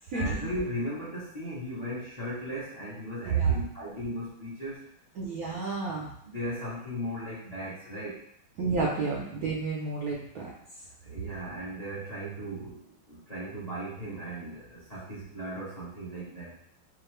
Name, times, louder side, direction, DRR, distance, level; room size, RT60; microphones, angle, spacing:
voice 1, 0.1-4.9 6.2-8.2 11.0-16.5, equal, 30° left, -8 dB, 0.7 m, -37 dB
voice 2, 5.2-6.1 8.6-10.5, right 5 dB, 70° right, -3 dB, 0.8 m, -29 dB
4.7 x 2.5 x 3.2 m, 0.67 s
omnidirectional pair, 2.3 m